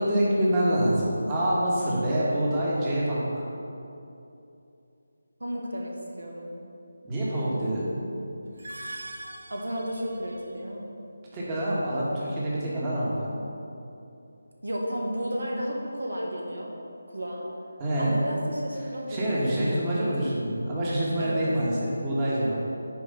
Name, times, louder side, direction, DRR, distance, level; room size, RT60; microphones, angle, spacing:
voice 1, 0.0-3.4 7.0-7.9 11.3-13.3 17.8-18.2 19.1-22.6, right 1 dB, 20° right, -7 dB, 1.7 m, -26 dB
voice 2, 5.4-6.5 9.5-10.8 14.6-16.7 17.1-17.5 18.0-20.1 21.2-21.4, equal, 75° right, -2 dB, 1.6 m, -33 dB
sound 1, 8.4-10.7, right 1 dB, 60° right, 0.7 m, -42 dB
9.6 x 4.8 x 5.7 m, 2.7 s
figure-of-eight pair, 160°, 0 cm